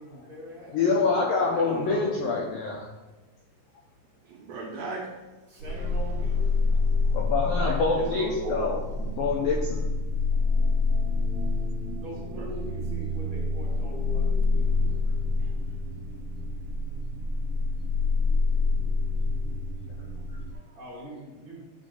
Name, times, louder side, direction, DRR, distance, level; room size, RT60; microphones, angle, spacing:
voice 1, 0.0-1.5 5.5-6.6 12.0-15.0 19.4-19.6 20.7-21.7, equal, 35° right, -8 dB, 2.5 m, -43 dB
voice 2, 0.7-2.9 7.1-9.9, left 4 dB, 80° left, -2 dB, 2.0 m, -26 dB
voice 3, 1.6-2.1 4.2-5.1 7.4-8.6 12.4-12.5 15.4-15.5 20.4-20.8, right 3 dB, 65° right, -3 dB, 2.8 m, -37 dB
sound 1, 5.6-20.5, left 3 dB, 90° right, 3.0 m, -27 dB
11.5 x 3.9 x 3.9 m, 1.2 s
omnidirectional pair, 5.1 m